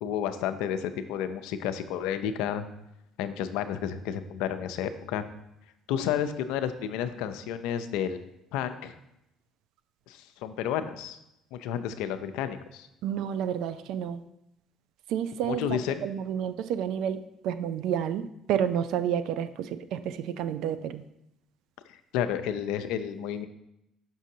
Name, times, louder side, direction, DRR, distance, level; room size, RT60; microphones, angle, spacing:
voice 1, 0.0-2.6 3.2-5.3 5.9-8.2 8.5-8.9 10.1-11.2 11.5-12.9 15.4-16.1 21.9-23.5, left 9 dB, 75° left, 10 dB, 0.5 m, -31 dB
voice 2, 13.0-14.2 15.1-21.1, right 9 dB, 70° right, 12 dB, 0.4 m, -30 dB
6.3 x 6.1 x 2.8 m, 0.83 s
supercardioid pair, 70°, 0 cm